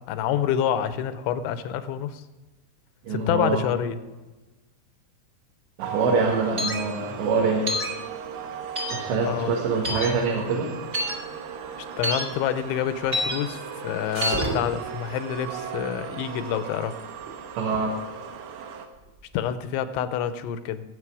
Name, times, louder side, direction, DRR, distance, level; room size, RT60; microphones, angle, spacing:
voice 1, 0.1-2.2 3.1-4.0 9.3-9.6 12.0-17.0 19.3-20.8, left 9 dB, 85° left, 11 dB, 3.1 m, -27 dB
voice 2, 3.1-3.6 5.8-7.6 8.9-10.7 17.6-17.9, right 4 dB, 70° right, -2 dB, 3.9 m, -24 dB
sound 1, 5.8-18.9, right 7 dB, 90° right, 3.8 m, -38 dB
sound 2, 6.6-6.8 7.7-7.9 8.8-9.0 9.8-10.1 10.9-11.1 12.0-12.2 13.1-13.4 14.2-14.4, left 1 dB, 50° right, 0.8 m, -27 dB
sound 3, 8.0-19.5, right 1 dB, 25° right, 1.5 m, -39 dB
20.5 x 8.4 x 4.9 m, 1.1 s
omnidirectional pair, 5.4 m